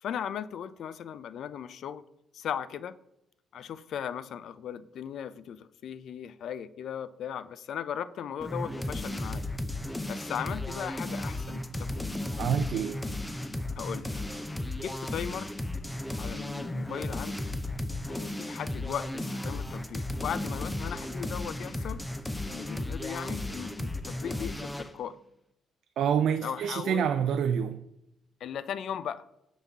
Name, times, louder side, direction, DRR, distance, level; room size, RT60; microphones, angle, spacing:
voice 1, 0.0-2.0 2.3-3.0 3.5-9.5 10.1-11.6 12.0-12.2 13.8-14.2 14.7-15.5 16.2-17.5 18.1-22.0 22.5-25.2 26.4-27.1 28.4-29.2, left 8 dB, 70° left, 15 dB, 0.3 m, -37 dB
sound 1, 8.4-24.9, left 1 dB, 10° left, 0.5 m, -35 dB
voice 2, 12.4-13.0 26.0-27.8, right 8 dB, 75° right, 9 dB, 0.3 m, -27 dB
6.8 x 3.9 x 3.5 m, 0.83 s
cardioid pair, 90°, 0 cm